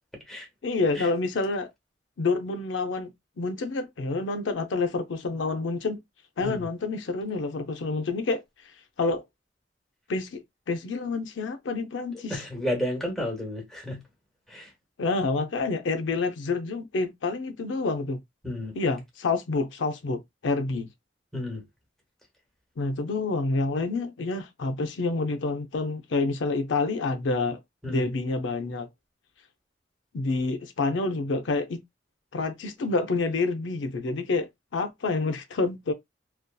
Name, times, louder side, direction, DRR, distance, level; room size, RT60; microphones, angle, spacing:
voice 1, 0.6-1.7 2.2-6.0 6.4-8.4 9.0-9.2 10.1-12.4 15.0-18.2 18.8-20.9 22.8-27.6 27.9-28.9 30.1-31.8 32.3-35.9, left 3 dB, 85° left, 0.5 m, -28 dB
voice 2, 12.3-14.0 14.5-14.7 18.4-18.8 21.3-21.6 27.8-28.1, left 1 dB, ahead, 0.9 m, -32 dB
2.6 x 2.3 x 2.2 m
head